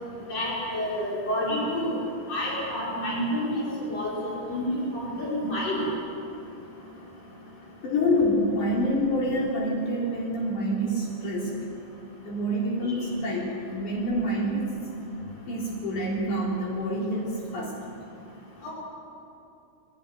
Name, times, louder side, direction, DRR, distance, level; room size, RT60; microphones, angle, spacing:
voice 1, 0.3-1.9 2.3-5.9 12.8-12.9 18.6-18.7, equal, 55° left, -6 dB, 6.8 m, -29 dB
voice 2, 7.8-11.5 12.2-14.7 15.5-17.7, equal, 75° left, -5 dB, 5.1 m, -27 dB
22.5 x 18.5 x 9.8 m, 2.7 s
omnidirectional pair, 3.5 m